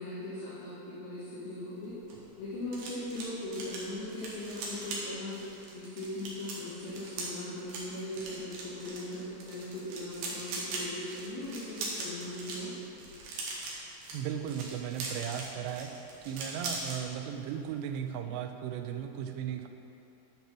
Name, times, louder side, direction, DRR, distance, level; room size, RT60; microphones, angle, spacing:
voice 1, 0.0-2.0 2.4-5.4 5.7-12.7, left 1 dB, 80° left, -12 dB, 4.1 m, -39 dB
sound 1, 1.8-17.0 17.3-17.6 17.9-18.1, right 3 dB, 70° right, 3.3 m, -41 dB
voice 2, 14.1-15.9 16.2-19.7, right 9 dB, 85° right, 6 dB, 2.7 m, -36 dB
10.5 x 5.5 x 6.1 m, 3.0 s
omnidirectional pair, 5.0 m